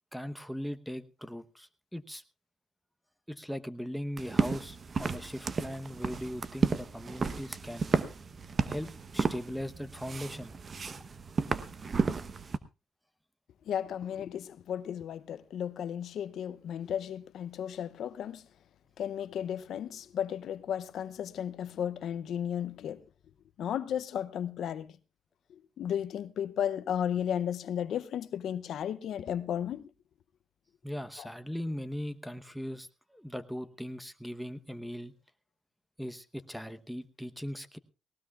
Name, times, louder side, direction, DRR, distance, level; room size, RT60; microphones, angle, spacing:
voice 1, 0.1-2.2 3.3-7.9 8.7-8.9 9.1-10.5 30.8-35.1 36.0-37.8, equal, ahead, 1.0 m, -39 dB
sound 1, 4.2-12.6, right 4 dB, 40° right, 1.0 m, -32 dB
voice 2, 13.7-18.4 19.0-23.0 23.6-24.9 25.8-29.9 31.2-31.3, left 9 dB, 70° left, 0.6 m, -34 dB
18.5 x 18.5 x 2.4 m
cardioid pair, 90°, 0 cm